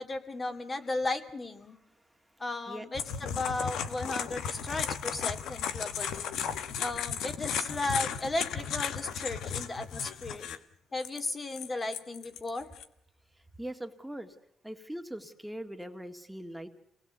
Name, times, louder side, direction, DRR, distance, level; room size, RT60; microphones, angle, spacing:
voice 1, 0.0-1.8 2.4-6.3 6.8-10.5 10.9-12.7, left 2 dB, 30° left, 7 dB, 2.3 m, -35 dB
sound 1, 2.9-10.6 11.0-12.8, left 8 dB, 80° left, 1.2 m, -35 dB
voice 2, 13.6-14.3 14.6-16.7, right 1 dB, 5° right, 5 dB, 1.9 m, -41 dB
28.0 x 19.0 x 8.1 m, 0.74 s
cardioid pair, 90°, 0 cm